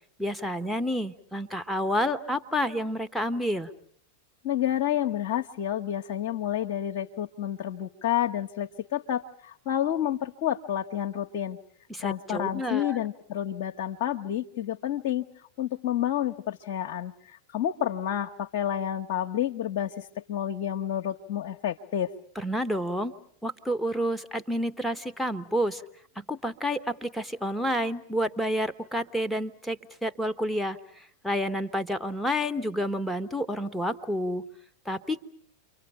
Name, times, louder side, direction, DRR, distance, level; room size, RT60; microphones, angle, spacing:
voice 1, 0.2-3.7 11.9-13.0 22.4-23.1 23.4-25.8 26.2-34.5 34.8-35.2, equal, ahead, 8 dB, 1.3 m, -29 dB
voice 2, 4.4-11.6 12.0-15.3 15.6-22.1, left 10 dB, 50° left, 3 dB, 1.0 m, -29 dB
30.0 x 24.5 x 5.7 m, 0.62 s
figure-of-eight pair, 90°, 0 cm